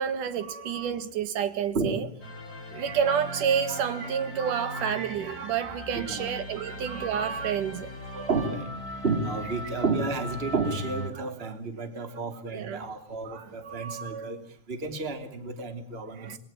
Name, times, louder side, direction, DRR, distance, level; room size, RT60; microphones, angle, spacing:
voice 1, 0.0-2.1 2.7-7.9 11.2-11.3 12.5-12.8 13.3-14.3 16.2-16.4, right 8 dB, 65° right, 3.1 m, -29 dB
sound 1, 2.2-11.1, left 1 dB, 25° left, 5.3 m, -39 dB
voice 2, 5.9-6.3 8.1-8.7 9.0-14.4 14.7-16.4, right 3 dB, 15° right, 2.7 m, -31 dB
27.5 x 21.5 x 8.9 m
omnidirectional pair, 4.3 m